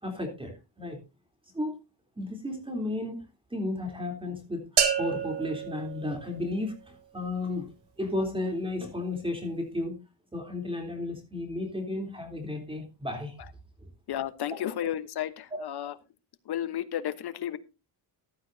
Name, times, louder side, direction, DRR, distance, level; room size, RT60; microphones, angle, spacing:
voice 1, 0.0-0.5 0.8-1.0 1.5-1.7 2.2-3.2 3.5-7.7 8.0-10.0 10.3-13.3 13.8-13.9, left 2 dB, 10° right, 3 dB, 3.6 m, -33 dB
sound 1, 4.8-6.7, right 8 dB, 65° right, 2.3 m, -29 dB
voice 2, 14.1-15.9 16.5-17.6, left 11 dB, 65° left, 12 dB, 1.2 m, -32 dB
15.0 x 11.5 x 2.8 m, 0.27 s
cardioid pair, 135°, 42 cm